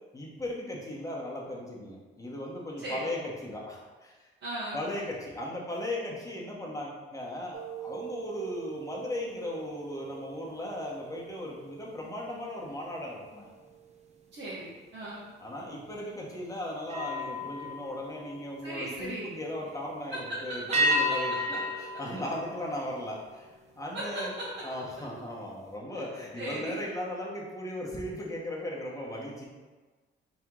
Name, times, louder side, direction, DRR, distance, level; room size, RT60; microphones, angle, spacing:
voice 1, 0.1-4.3 4.7-13.6 15.4-21.6 22.0-23.5 23.8-24.3 24.6-29.4, left 1 dB, 15° left, -3 dB, 1.1 m, -37 dB
voice 2, 4.4-4.8 14.3-15.2 18.6-19.3 20.1-21.0 22.2-22.3 23.9-24.4 25.9-26.1 26.4-26.8, right 1 dB, 60° right, -8 dB, 1.1 m, -37 dB
sound 1, 7.5-13.1 13.6-13.9 16.8-19.0 20.7-23.3, equal, 35° right, 0.7 m, -34 dB
4.2 x 3.1 x 3.7 m, 1.3 s
cardioid pair, 90°, 20 cm